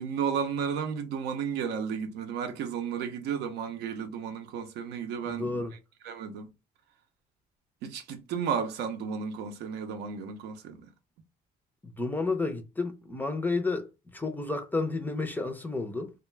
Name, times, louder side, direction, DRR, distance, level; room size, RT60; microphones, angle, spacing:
voice 1, 0.0-5.6 6.0-6.5 7.8-10.8, right 7 dB, 80° right, 0.6 m, -33 dB
voice 2, 5.2-5.7 11.8-16.1, left 3 dB, 10° left, 0.4 m, -31 dB
2.3 x 2.1 x 3.2 m
cardioid pair, 110°, 17 cm